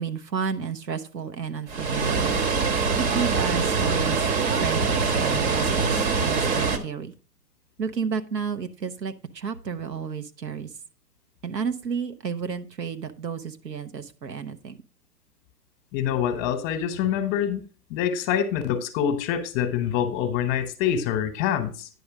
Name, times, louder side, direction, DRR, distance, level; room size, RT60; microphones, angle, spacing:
voice 1, 0.0-2.3 3.0-4.2 4.6-7.1 7.8-10.7 11.4-14.8, right 6 dB, 85° right, 1.2 m, -31 dB
Water, 1.7-6.8, right 4 dB, 40° right, 1.3 m, -24 dB
voice 2, 15.9-21.9, left 9 dB, 25° left, 1.0 m, -26 dB
9.8 x 5.2 x 4.7 m
hypercardioid pair, 125°, 49 cm